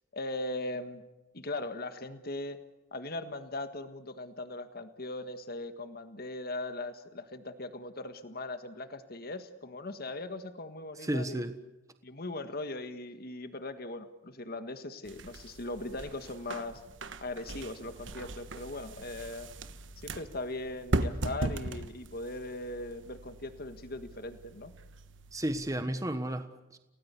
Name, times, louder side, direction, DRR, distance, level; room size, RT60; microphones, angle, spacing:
voice 1, 0.1-1.0 1.3-2.6 2.9-11.4 12.0-16.8 17.2-19.5 20.0-24.7, left 2 dB, 50° left, 9 dB, 1.6 m, -39 dB
voice 2, 11.0-11.5 25.3-26.8, right 1 dB, 15° right, 9 dB, 1.4 m, -33 dB
sound 1, 15.0-25.8, right 2 dB, 70° right, 1.4 m, -39 dB
29.5 x 18.5 x 8.4 m, 1.0 s
head